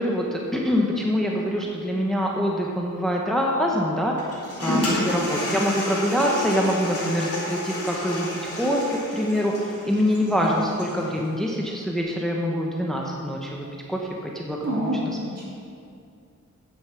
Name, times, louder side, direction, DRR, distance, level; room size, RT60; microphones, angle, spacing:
voice 1, 0.0-4.1 4.6-14.9, equal, ahead, -1 dB, 1.0 m, -25 dB
Toilet flush, 4.2-11.1, left 1 dB, 50° left, 2.5 m, -30 dB
voice 2, 4.8-5.2 10.2-10.6 14.6-15.4, equal, 55° right, -5 dB, 2.8 m, -29 dB
9.6 x 7.2 x 5.8 m, 2.4 s
wide cardioid pair, 110°, 30 cm